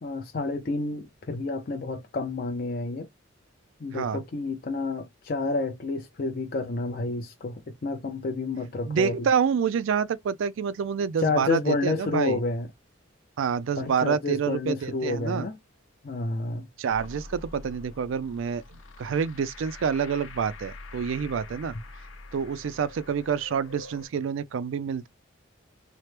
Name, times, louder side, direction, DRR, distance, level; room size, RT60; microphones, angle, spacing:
voice 1, 0.0-3.1 3.8-9.3 11.2-12.7 13.8-15.6 16.0-16.7, left 3 dB, 45° left, 0.4 m, -30 dB
voice 2, 8.9-12.4 13.4-15.5 16.8-18.6 19.0-21.7 22.3-25.1, right 7 dB, 75° right, 0.3 m, -27 dB
sound 1, 16.9-24.1, left 3 dB, 80° left, 0.8 m, -45 dB
2.9 x 2.0 x 3.1 m
head